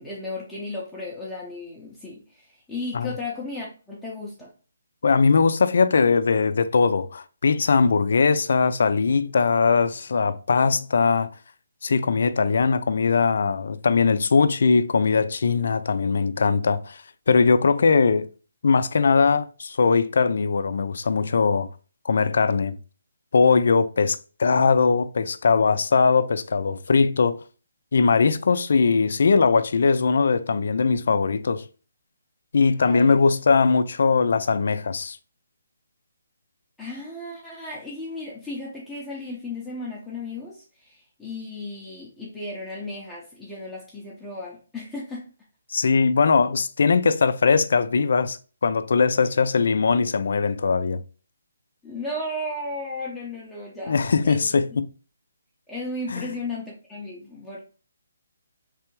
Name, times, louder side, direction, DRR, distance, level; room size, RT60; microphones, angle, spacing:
voice 1, 0.0-4.5 32.9-33.2 36.8-45.3 51.8-54.0 54.2-54.5 55.7-57.6, left 2 dB, 5° left, 0.7 m, -35 dB
voice 2, 5.0-11.3 11.8-18.3 18.6-21.7 22.0-22.7 23.3-27.4 27.9-31.6 32.5-35.2 45.7-48.4 48.6-51.0 53.9-54.9 56.1-56.3, left 5 dB, 65° left, 0.4 m, -20 dB
3.3 x 3.3 x 3.1 m
hypercardioid pair, 155°, 0 cm